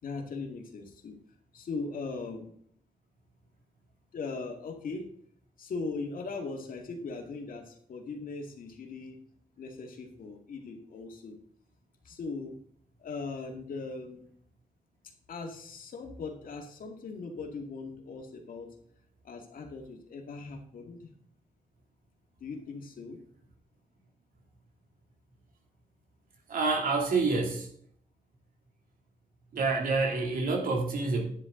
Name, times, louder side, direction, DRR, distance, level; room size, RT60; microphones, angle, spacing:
voice 1, 0.0-1.2 1.5-2.5 4.1-5.1 5.6-9.2 9.6-11.4 12.0-12.6 13.0-14.2 15.3-18.7 19.2-21.1 22.4-23.2, left 4 dB, 80° left, 3 dB, 2.1 m, -39 dB
voice 2, 26.5-27.7 29.5-31.2, right 3 dB, 85° right, 1 dB, 2.7 m, -27 dB
11.0 x 9.6 x 3.8 m, 0.63 s
wide cardioid pair, 105°, 14 cm